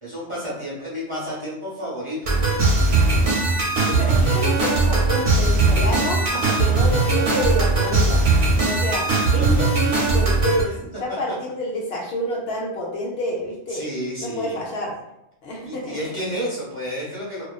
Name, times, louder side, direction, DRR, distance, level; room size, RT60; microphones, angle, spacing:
voice 1, 0.0-2.3 9.0-9.2 13.7-14.6 15.6-17.4, equal, 30° right, -8 dB, 0.7 m, -31 dB
sound 1, 2.3-10.6, right 3 dB, 70° right, 1.0 m, -19 dB
voice 2, 3.9-6.2 6.6-8.2 8.6-9.0 9.3-10.7 11.0-13.8 14.2-14.9 15.4-16.0, left 1 dB, 70° left, -2 dB, 0.8 m, -28 dB
2.4 x 2.4 x 2.3 m, 0.84 s
omnidirectional pair, 1.2 m